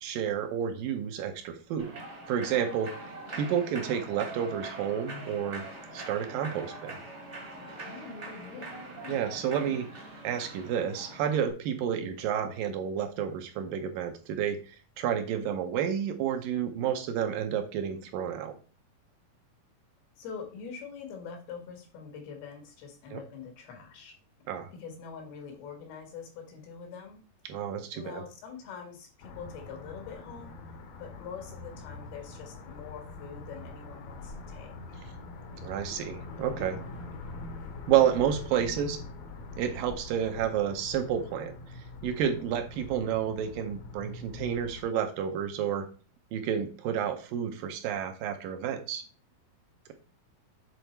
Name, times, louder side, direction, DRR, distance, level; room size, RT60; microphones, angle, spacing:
voice 1, 0.0-1.9 2.3-2.9 3.3-5.6 5.9-7.0 9.1-9.9 10.2-14.6 15.0-18.5 23.1-23.2 24.5-24.7 27.5-28.2 35.6-36.8 37.9-39.0 39.6-45.9 46.3-49.0, right 9 dB, 75° right, 6 dB, 2.3 m, -30 dB
Human voice / Clapping / Cheering, 1.8-11.5, right 2 dB, 40° right, 1.0 m, -43 dB
voice 2, 3.2-3.6 7.8-9.2 20.2-24.1 24.8-27.2 27.9-30.6 31.0-34.7, left 6 dB, 85° left, 3 dB, 3.7 m, -44 dB
sound 1, 29.2-44.8, left 3 dB, 70° left, 1.6 m, -44 dB
8.1 x 4.0 x 4.5 m, 0.36 s
omnidirectional pair, 4.3 m